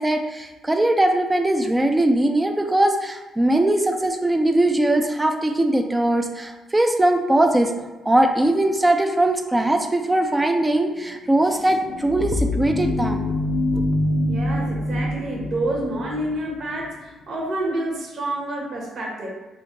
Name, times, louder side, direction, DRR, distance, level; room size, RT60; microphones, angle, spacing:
voice 1, 0.0-7.7 8.1-13.4 13.7-13.8, right 1 dB, 15° right, 4 dB, 0.4 m, -20 dB
sound 1, 11.4-16.9, left 1 dB, 80° left, 0.4 m, -25 dB
voice 2, 14.3-19.3, right 1 dB, 55° right, -2 dB, 0.9 m, -28 dB
2.8 x 2.6 x 3.9 m, 1.2 s
cardioid pair, 90°, 0 cm